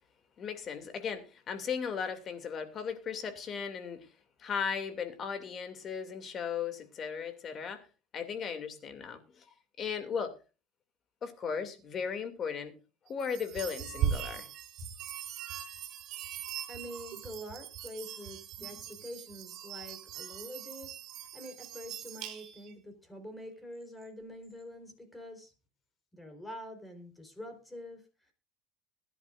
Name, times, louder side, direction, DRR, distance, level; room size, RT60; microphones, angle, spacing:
voice 1, 0.4-4.1 4.4-7.8 8.1-9.4 9.8-10.4 11.2-12.8 13.1-14.5, left 6 dB, 35° left, 2.6 m, -36 dB
sound 1, 13.2-22.7, right 10 dB, 55° right, 4.2 m, -39 dB
voice 2, 16.4-20.9 21.3-25.5 26.1-28.3, equal, 10° left, 4.1 m, -46 dB
21.0 x 11.0 x 2.6 m
supercardioid pair, 135°, 0 cm